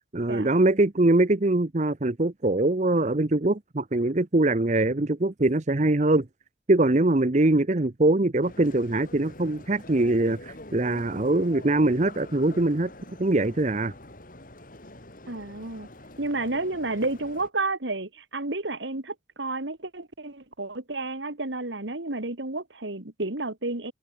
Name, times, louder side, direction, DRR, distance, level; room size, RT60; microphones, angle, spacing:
voice 1, 0.1-6.3 6.7-12.9 13.2-13.9, right 2 dB, 40° right, 0.9 m, -23 dB
sound 1, 8.4-17.5, left 1 dB, 45° left, 4.2 m, -45 dB
voice 2, 15.3-15.9 16.2-23.9, right 2 dB, 75° right, 2.4 m, -31 dB
head